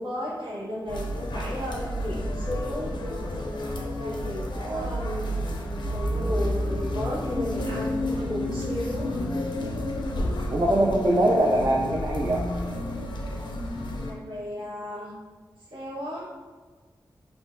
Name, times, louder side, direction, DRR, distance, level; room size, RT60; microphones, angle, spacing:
voice 1, 0.0-2.9 3.5-5.2 5.9-9.1 14.0-15.1 15.7-16.3, left 1 dB, 75° right, -6 dB, 1.0 m, -34 dB
sound 1, 0.9-14.1, left 1 dB, 65° left, 0.4 m, -30 dB
voice 2, 4.6-5.0 10.5-12.4, right 1 dB, 40° right, -2 dB, 0.3 m, -23 dB
3.7 x 2.1 x 2.5 m, 1.4 s
wide cardioid pair, 110°, 8 cm